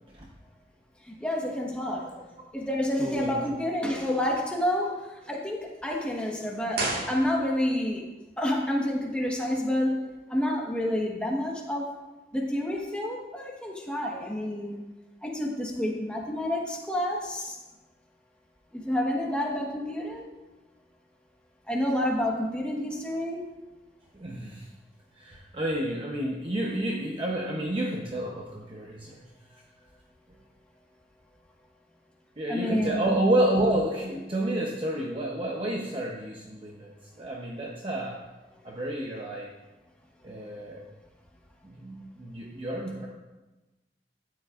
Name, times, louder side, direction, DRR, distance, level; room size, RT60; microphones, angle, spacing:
voice 1, 1.0-2.1 2.5-8.0 8.4-11.9 12.3-14.8 15.2-17.6 18.7-20.2 21.7-23.4 32.5-33.2, left 1 dB, 5° left, -1 dB, 1.2 m, -29 dB
voice 2, 3.0-3.4 24.1-24.7 25.2-29.2 32.4-36.9 37.2-38.2 38.6-39.5 40.2-40.8 41.6-43.1, right 1 dB, 30° right, -2 dB, 0.8 m, -30 dB
sound 1, 6.7-7.8 8.1-8.2, right 2 dB, 60° right, 1.8 m, -32 dB
12.5 x 9.5 x 2.5 m, 1.1 s
head